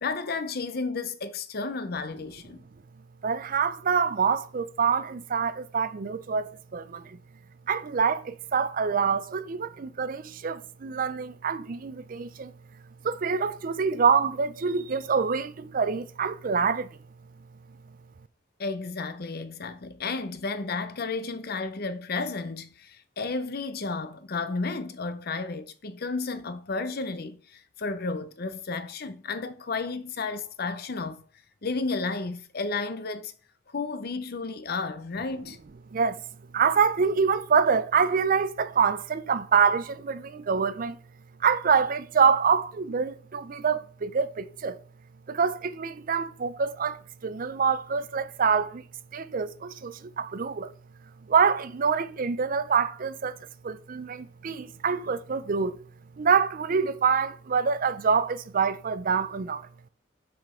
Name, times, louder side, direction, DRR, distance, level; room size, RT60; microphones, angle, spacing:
voice 1, 0.0-2.6 18.6-31.2 31.6-33.3 33.7-35.6, left 3 dB, 50° left, 0.7 m, -32 dB
voice 2, 3.2-7.2 7.7-12.5 13.0-16.9 35.9-36.2 36.5-41.0 41.4-44.8 45.3-48.8 49.1-50.7 51.3-53.3 53.6-55.8 56.2-59.7, right 6 dB, 45° right, 0.4 m, -26 dB
6.0 x 5.0 x 4.3 m
head